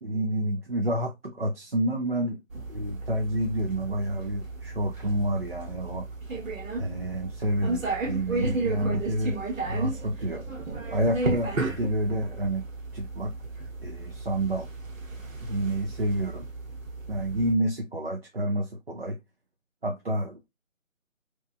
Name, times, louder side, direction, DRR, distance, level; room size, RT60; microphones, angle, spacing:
voice 1, 0.0-2.4 2.7-6.1 6.8-9.4 9.7-10.4 10.9-12.6 12.9-13.3 13.8-14.7 15.4-16.5 17.1-19.2 19.8-20.5, right 1 dB, 50° right, 0.4 m, -29 dB
sound 1, 2.5-17.5, right 3 dB, 70° right, 1.0 m, -34 dB
2.9 x 2.2 x 2.3 m
figure-of-eight pair, 170°, 41 cm